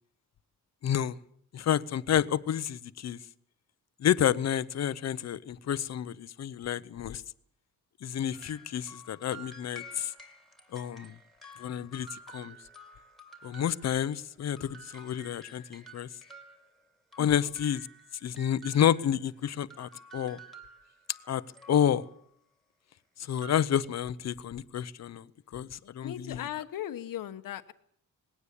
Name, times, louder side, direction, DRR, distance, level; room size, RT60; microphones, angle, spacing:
voice 1, 0.8-1.2 1.5-3.2 4.0-7.2 8.0-10.1 10.7-11.1 11.6-12.5 13.4-16.1 17.2-17.8 18.2-20.4 21.3-21.4 21.7-22.0 23.2-25.3 25.5-26.4, left 9 dB, 50° left, 16 dB, 0.8 m, -29 dB
sound 1, 8.3-14.3 14.6-19.3 19.7-22.2 23.4-23.5, right 1 dB, ahead, 2.6 m, -51 dB
voice 2, 17.2-17.5 26.0-27.7, left 11 dB, 75° left, 10 dB, 1.2 m, -38 dB
20.0 x 17.0 x 8.5 m, 0.66 s
wide cardioid pair, 175°, 33 cm